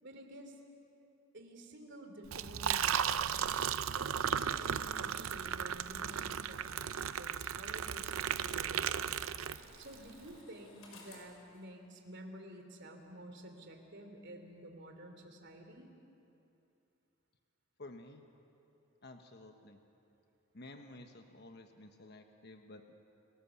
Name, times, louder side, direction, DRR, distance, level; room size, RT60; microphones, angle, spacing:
voice 1, 0.0-0.6 1.3-3.4 3.7-8.9 9.8-15.9, right 1 dB, 55° right, 4 dB, 2.9 m, -51 dB
Liquid, 2.3-9.9, right 8 dB, 75° right, 0.6 m, -35 dB
sound 1, 8.6-12.6 12.9-13.0, left 3 dB, 85° left, 5.5 m, -60 dB
voice 2, 17.8-18.2 19.0-19.8 20.5-22.9, left 2 dB, 50° left, 5 dB, 1.1 m, -52 dB
30.0 x 18.5 x 7.1 m, 2.7 s
head